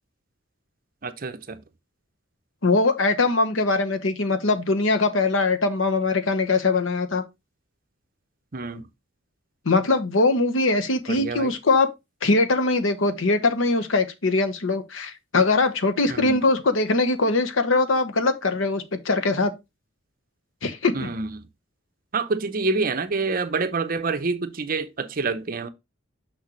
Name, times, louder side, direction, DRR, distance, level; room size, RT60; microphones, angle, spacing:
voice 1, 1.0-1.6 8.5-8.8 11.1-11.5 16.1-16.4 20.9-21.5 22.1-25.7, right 4 dB, 45° right, 0.7 m, -27 dB
voice 2, 2.6-7.2 9.6-11.9 12.2-19.5 20.6-21.1, left 3 dB, 80° left, 1.1 m, -22 dB
6.3 x 6.2 x 3.1 m
head